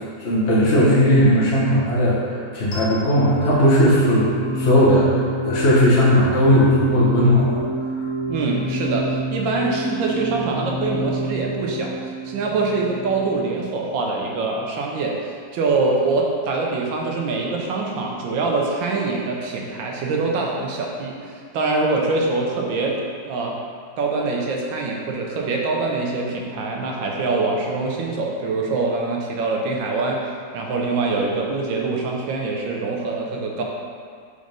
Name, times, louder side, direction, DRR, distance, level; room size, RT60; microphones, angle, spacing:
voice 1, 0.2-7.6, equal, 40° left, -8 dB, 1.1 m, -17 dB
sound 1, 2.7-13.7, right 1 dB, 85° left, 2.5 m, -27 dB
voice 2, 8.3-23.0 23.2-23.6 24.0-30.2 30.5-33.6, right 3 dB, 75° right, -1 dB, 1.5 m, -24 dB
5.1 x 4.0 x 5.1 m, 2.1 s
omnidirectional pair, 2.1 m